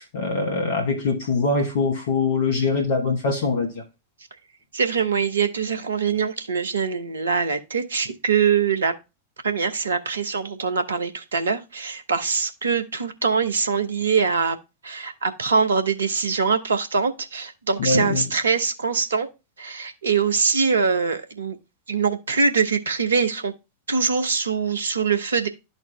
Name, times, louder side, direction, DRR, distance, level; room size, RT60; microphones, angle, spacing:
voice 1, 0.0-3.8 17.8-18.3, left 3 dB, 55° left, 0.9 m, -23 dB
voice 2, 4.7-8.9 9.4-14.6 14.8-19.3 19.6-21.6 21.9-23.5 23.9-25.5, right 5 dB, 70° right, 0.7 m, -23 dB
12.0 x 4.1 x 2.2 m
figure-of-eight pair, 90°, 0 cm